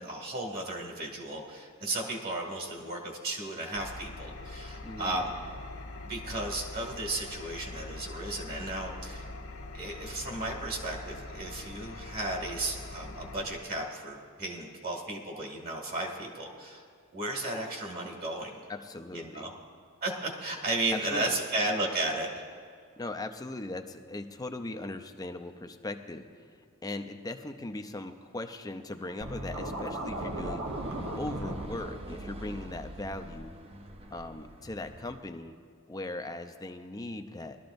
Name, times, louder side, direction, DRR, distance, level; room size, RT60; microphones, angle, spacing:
voice 1, 0.0-5.3 6.0-9.3 9.7-16.9 17.1-18.5 19.1-19.5 20.0-22.3, right 2 dB, 45° right, 0 dB, 2.2 m, -34 dB
Engine, 3.7-13.6, left 2 dB, 85° left, 1.0 m, -43 dB
voice 2, 4.8-5.3 18.7-19.5 21.1-21.4 23.0-30.7 31.1-33.5 34.1-35.6 35.9-37.6, left 2 dB, 15° left, 7 dB, 0.6 m, -39 dB
Scratching (performance technique), 29.2-31.8, right 1 dB, 65° right, 1.2 m, -36 dB
sound 1, 30.1-35.2, right 1 dB, 25° right, 0.6 m, -44 dB
20.5 x 13.0 x 2.6 m, 2.1 s
head